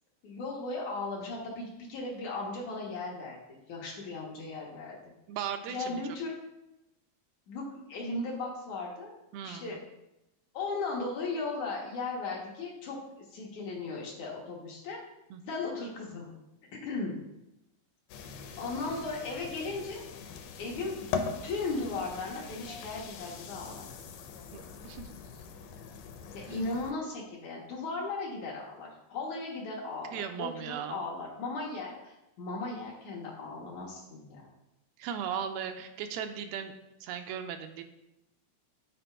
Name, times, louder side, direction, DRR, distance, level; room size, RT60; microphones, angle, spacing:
voice 1, 0.2-5.0 5.7-6.3 7.5-9.2 9.4-9.8 10.5-13.0 13.3-15.0 15.5-16.3 16.8-17.1 18.6-20.0 20.6-23.9 26.3-34.5, left 3 dB, 65° left, -3 dB, 2.2 m, -37 dB
voice 2, 5.3-6.0 9.3-9.8 15.3-15.4 24.5-25.1 26.5-26.7 30.1-31.1 35.0-36.7 37.0-37.8, right 8 dB, 85° right, 7 dB, 2.5 m, -37 dB
sound 1, 18.1-26.9, left 6 dB, 85° left, 2.7 m, -41 dB
8.9 x 4.3 x 4.6 m, 0.92 s
omnidirectional pair, 4.4 m